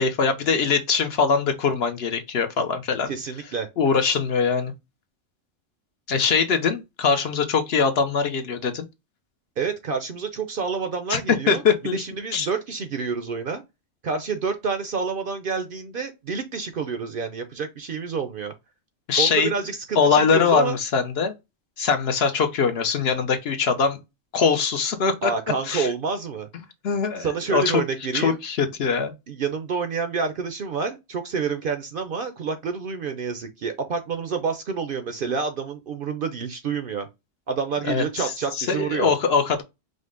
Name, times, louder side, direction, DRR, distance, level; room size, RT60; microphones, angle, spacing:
voice 1, 0.0-3.1 3.8-4.7 6.1-8.9 11.1-11.2 11.5-12.0 12.3-12.5 19.1-19.5 20.0-21.3 21.8-24.0 24.3-25.3 25.6-25.9 26.8-27.8 28.1-29.1 37.9-39.6, left 5 dB, 60° left, 0.8 m, -22 dB
voice 2, 3.1-3.7 9.6-11.6 11.9-13.6 14.0-18.5 19.2-20.8 25.2-26.5 27.2-28.4 29.3-37.1 37.5-39.1, right 5 dB, 55° right, 0.7 m, -28 dB
5.1 x 2.1 x 3.6 m
omnidirectional pair, 1.3 m